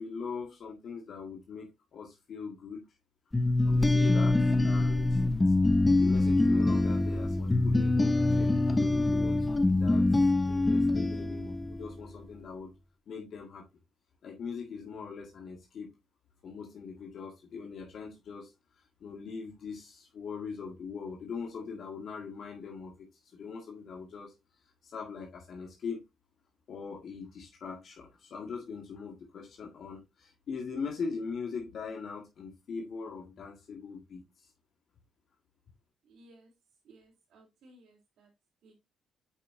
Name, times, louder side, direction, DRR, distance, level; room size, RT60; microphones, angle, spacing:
voice 1, 0.0-2.8 3.6-5.2 5.9-10.2 10.4-12.7 13.1-13.6 14.2-15.9 16.4-24.3 24.8-26.0 26.7-34.5, left 5 dB, 60° left, 1.8 m, -41 dB
sound 1, 3.3-12.1, left 2 dB, 15° left, 0.7 m, -25 dB
voice 2, 36.0-36.5 36.8-38.3 38.6-38.7, right 2 dB, 70° right, 3.6 m, -59 dB
8.4 x 5.4 x 2.7 m
cardioid pair, 90°, 0 cm